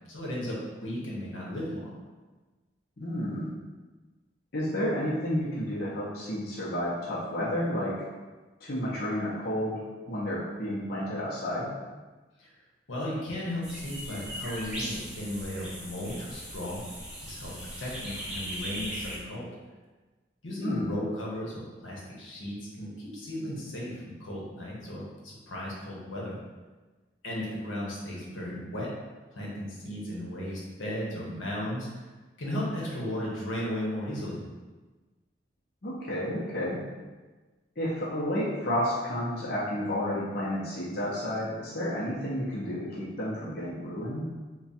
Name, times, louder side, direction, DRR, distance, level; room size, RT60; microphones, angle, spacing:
voice 1, 0.1-2.0 12.4-12.5 12.9-16.8 17.2-19.5 20.4-26.4 27.2-28.9 29.3-31.9 32.4-34.5, left 1 dB, 85° left, -4 dB, 1.0 m, -35 dB
voice 2, 3.0-3.5 4.5-8.0 8.6-9.8 10.1-11.7 20.6-20.9 35.8-36.8 37.8-44.3, equal, 50° left, -7 dB, 0.8 m, -31 dB
sound 1, 13.6-19.2, equal, 5° right, 0.9 m, -39 dB
3.6 x 2.3 x 4.1 m, 1.3 s
head